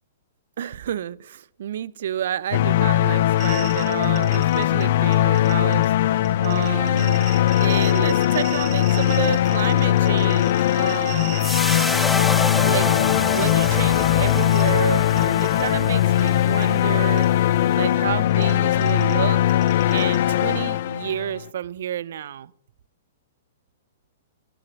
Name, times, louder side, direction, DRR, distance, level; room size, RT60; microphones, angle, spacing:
voice 1, 0.6-11.4 11.7-11.9 12.6-19.4 19.9-22.5, right 10 dB, 65° right, 22 dB, 0.5 m, -30 dB
sound 1, 2.5-21.4, left 12 dB, 55° left, 0.4 m, -20 dB
sound 2, 3.4-4.8 5.1-5.8 6.2-12.3 12.6-14.8 15.1-15.7 16.2-16.3 16.6-16.7 17.2-17.3 18.3-20.2, right 11 dB, 30° right, 4.1 m, -38 dB
sound 3, 11.4-17.8, left 2 dB, 5° left, 0.5 m, -28 dB
11.5 x 11.0 x 6.0 m, 0.74 s
hypercardioid pair, 130°, 0 cm